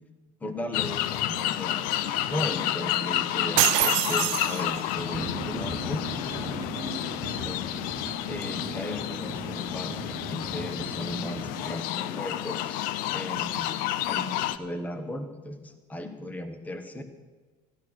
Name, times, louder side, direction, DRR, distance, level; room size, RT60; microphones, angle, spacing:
voice 1, 0.4-6.0 6.3-7.6 8.3-12.8 13.1-13.8 14.0-17.0, left 1 dB, 10° left, 8 dB, 1.2 m, -37 dB
sound 1, 0.7-14.6, left 13 dB, 60° left, 0.6 m, -30 dB
sound 2, 3.6-5.0, right 22 dB, 80° right, 0.4 m, -25 dB
sound 3, 5.1-11.8, right 5 dB, 20° right, 0.7 m, -39 dB
14.0 x 12.5 x 6.2 m, 1.4 s
cardioid pair, 160°, 16 cm